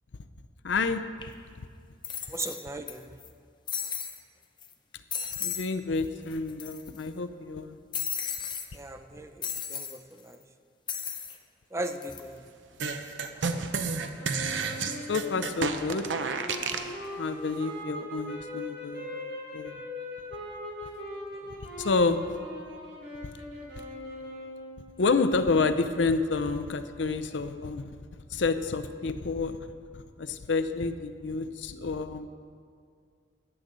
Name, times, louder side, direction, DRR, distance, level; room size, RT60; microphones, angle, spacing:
voice 1, 0.6-1.1 5.4-7.8 15.1-16.1 17.2-19.7 21.8-22.4 23.2-23.3 25.0-28.0 28.3-29.7 29.9-32.3, left 4 dB, 80° left, 10 dB, 0.6 m, -29 dB
sound 1, 1.2-1.3 2.0-2.9 3.2-3.3 3.7-4.2 4.6-4.7 5.1-5.7 6.0-6.1 6.3-7.0 7.9-8.7 9.4-10.0 10.9-11.4 11.8-12.2, left 7 dB, 25° left, 0.7 m, -34 dB
voice 2, 2.3-3.2 8.7-10.5 11.7-12.5 21.3-21.5, right 2 dB, 15° right, 7 dB, 0.5 m, -38 dB
sound 2, 12.8-16.9, right 5 dB, 90° right, 0.7 m, -31 dB
sound 3, 14.2-24.9, left 1 dB, 65° right, 3.1 m, -40 dB
14.5 x 9.9 x 3.9 m, 2.2 s
head